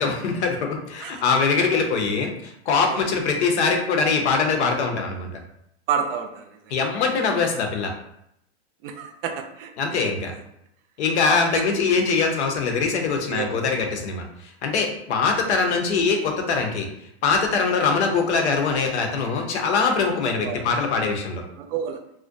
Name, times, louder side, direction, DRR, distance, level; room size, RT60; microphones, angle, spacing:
voice 1, 0.0-5.3 6.7-7.9 9.8-10.3 11.0-16.9 17.2-21.4, left 4 dB, 80° left, 3 dB, 0.6 m, -23 dB
voice 2, 5.9-6.4 8.8-10.4 11.3-11.4 13.3-13.5 20.3-20.6 21.6-22.0, right 7 dB, 55° right, 4 dB, 0.5 m, -30 dB
2.4 x 2.1 x 2.5 m, 0.78 s
hypercardioid pair, 120°, 33 cm